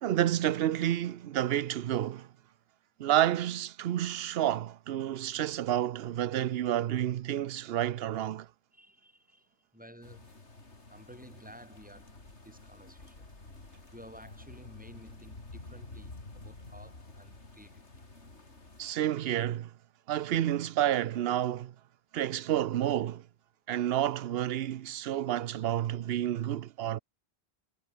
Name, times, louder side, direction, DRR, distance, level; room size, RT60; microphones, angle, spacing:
voice 1, 0.0-2.3 3.0-8.5 18.8-19.7 20.1-21.7 22.1-23.3 23.7-27.0, right 12 dB, 65° right, 0.8 m, -30 dB
voice 2, 8.7-9.5 9.7-10.4 10.9-12.2 12.4-13.2 13.9-17.9, equal, 5° right, 7.9 m, -53 dB
sound 1, 10.0-18.9, left 2 dB, 90° left, 4.1 m, -50 dB
omnidirectional pair, 1.1 m